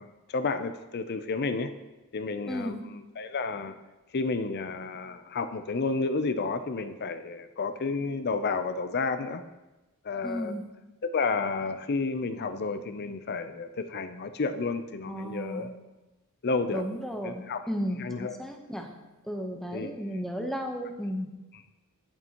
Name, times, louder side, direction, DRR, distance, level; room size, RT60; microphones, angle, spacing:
voice 1, 0.0-1.7 2.1-3.7 4.1-9.4 10.0-10.5 11.0-15.7 16.4-16.8 17.2-17.6 18.0-18.4 19.7-20.2 21.5-21.6, left 4 dB, 45° left, 10 dB, 0.5 m, -31 dB
voice 2, 2.5-2.8 10.2-10.6 15.1-15.7 16.7-18.9 19.3-21.3, equal, ahead, 3 dB, 0.9 m, -34 dB
19.0 x 6.8 x 3.0 m, 1.1 s
head